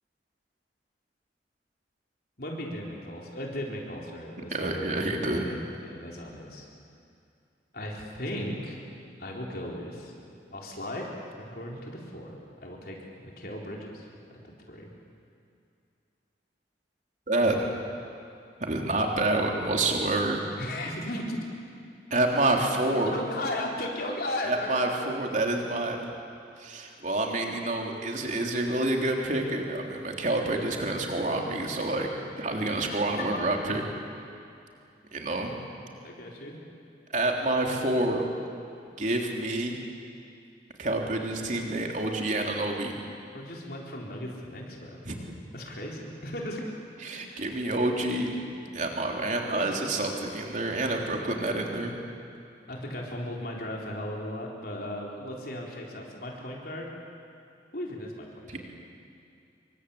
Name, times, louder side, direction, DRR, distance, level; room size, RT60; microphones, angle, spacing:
voice 1, 2.4-6.7 7.7-8.8 9.2-10.1 10.5-11.1 11.4-13.0 13.2-14.1 14.7-14.9 20.6-21.4 22.9-24.8 32.5-32.9 36.0-36.6 43.3-45.0 45.5-46.7 52.7-56.9 57.7-58.6, left 1 dB, 55° left, -1 dB, 4.3 m, -36 dB
voice 2, 4.5-5.5 17.3-17.7 18.6-20.4 22.1-23.2 24.5-26.0 26.6-32.1 32.4-33.8 35.1-35.5 37.1-38.2 39.0-39.7 40.8-42.9 45.0-45.2 47.0-48.4 48.7-51.9 58.5-58.6, right 2 dB, 45° right, 1 dB, 3.5 m, -28 dB
27.5 x 24.0 x 8.6 m, 2.5 s
head